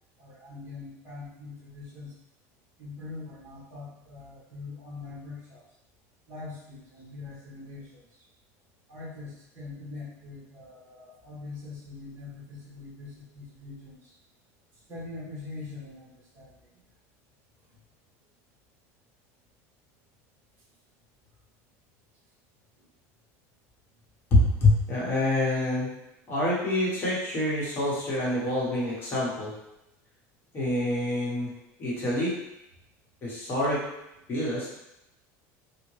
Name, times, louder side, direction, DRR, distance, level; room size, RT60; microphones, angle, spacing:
voice 1, 0.2-2.1 2.8-5.6 6.3-8.0 8.9-14.1 14.9-16.7 22.8-22.9, left 3 dB, 25° right, -6 dB, 1.2 m, -43 dB
voice 2, 24.3-25.9 26.3-29.5 30.5-31.5 31.8-32.4 33.2-33.8 34.3-34.7, left 1 dB, 25° left, -6 dB, 1.1 m, -26 dB
3.5 x 2.2 x 3.1 m, 0.87 s
cardioid pair, 150°, 8 cm